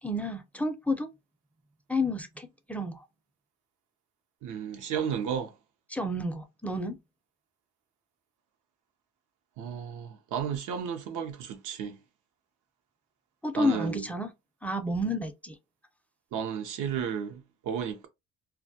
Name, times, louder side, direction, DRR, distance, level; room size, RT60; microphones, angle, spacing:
voice 1, 0.0-1.1 1.9-3.0 5.9-7.0 13.4-14.3 14.6-15.6, left 1 dB, 5° left, 0.4 m, -30 dB
voice 2, 4.4-5.5 9.6-12.0 13.6-14.0 16.3-18.1, right 8 dB, 80° right, 0.6 m, -33 dB
2.2 x 2.1 x 2.6 m
cardioid pair, 90°, 30 cm